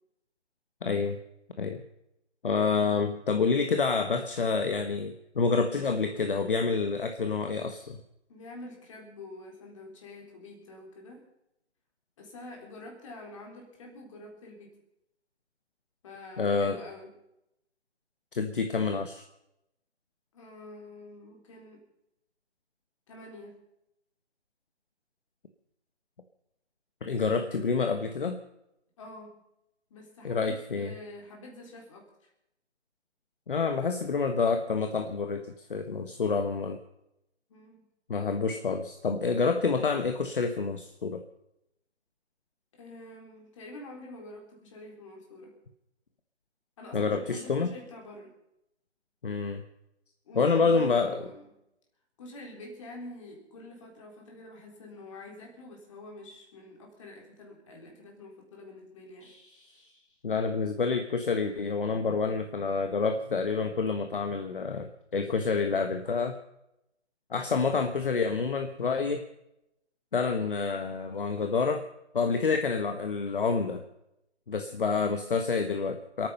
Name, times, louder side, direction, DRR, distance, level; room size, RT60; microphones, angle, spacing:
voice 1, 0.8-1.2 1.6-1.8 2.4-8.0 16.4-16.8 18.3-19.2 27.0-28.4 30.2-30.9 33.5-36.8 38.1-41.2 46.9-47.7 49.2-49.6 50.4-51.2 59.2-59.8 60.2-66.4 67.3-69.3 70.1-71.9 72.1-73.8 74.5-76.3, left 4 dB, 50° left, 6 dB, 1.3 m, -28 dB
voice 2, 8.3-11.3 12.2-14.8 16.0-17.1 20.3-21.8 23.1-23.6 29.0-29.4 29.9-32.1 37.5-37.9 42.7-45.5 46.8-48.3 50.2-51.5 52.2-59.3, left 2 dB, 25° left, 0 dB, 3.9 m, -46 dB
27.0 x 9.2 x 5.6 m, 0.84 s
figure-of-eight pair, 160°, 35 cm